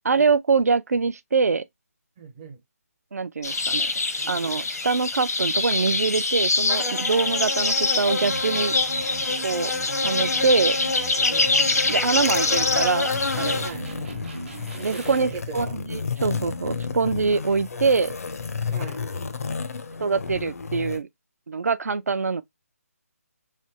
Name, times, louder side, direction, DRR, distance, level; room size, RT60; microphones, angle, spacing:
voice 1, 0.0-1.6 3.1-3.9 4.3-8.7 9.4-9.7 10.0-10.8 11.9-13.7 14.8-18.1 20.0-21.1 21.5-22.4, right 4 dB, 75° right, 0.4 m, -24 dB
voice 2, 2.2-2.6 3.4-3.7 4.2-4.6 9.8-10.6 11.3-12.1 13.6-13.9 14.7-15.7 16.9-17.0 18.7-19.0, right 5 dB, 15° right, 0.4 m, -41 dB
sound 1, 3.4-13.7, left 3 dB, 85° left, 0.9 m, -24 dB
Electric guitar, 8.2-15.5, right 3 dB, 45° right, 0.9 m, -38 dB
sound 2, 11.2-21.0, left 5 dB, 70° left, 0.5 m, -33 dB
3.3 x 2.8 x 2.8 m
hypercardioid pair, 170°, 8 cm